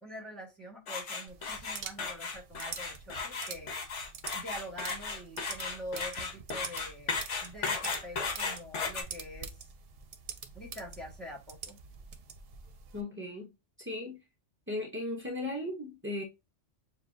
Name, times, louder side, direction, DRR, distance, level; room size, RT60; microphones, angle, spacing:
voice 1, 0.0-3.8 4.3-9.7 10.5-11.8, equal, ahead, 1.4 m, -45 dB
sound 1, 0.9-9.0, left 4 dB, 75° left, 1.3 m, -35 dB
sound 2, 1.3-13.0, right 6 dB, 60° right, 0.8 m, -46 dB
voice 2, 12.9-13.5 13.8-14.2 14.7-16.2, left 2 dB, 20° right, 0.4 m, -36 dB
6.8 x 2.4 x 2.5 m
omnidirectional pair, 1.2 m